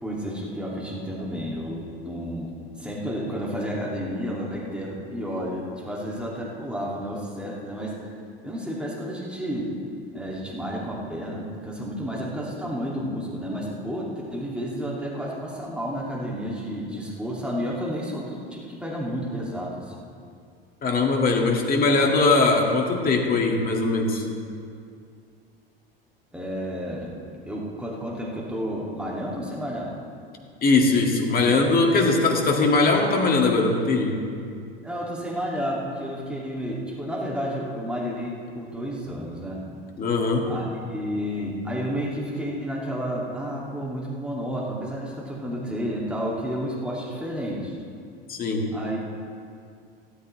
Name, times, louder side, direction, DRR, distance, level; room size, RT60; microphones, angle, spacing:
voice 1, 0.0-2.5 2.8-8.1 8.4-9.7 10.1-20.1 26.3-27.1 27.5-29.9 34.8-39.6 40.5-47.8 48.7-49.1, equal, 5° right, -4 dB, 2.5 m, -31 dB
voice 2, 20.8-24.2 30.6-34.2 40.0-40.5 48.3-48.7, left 3 dB, 30° left, 1 dB, 2.2 m, -21 dB
15.5 x 13.5 x 3.3 m, 2.3 s
figure-of-eight pair, 80°, 29 cm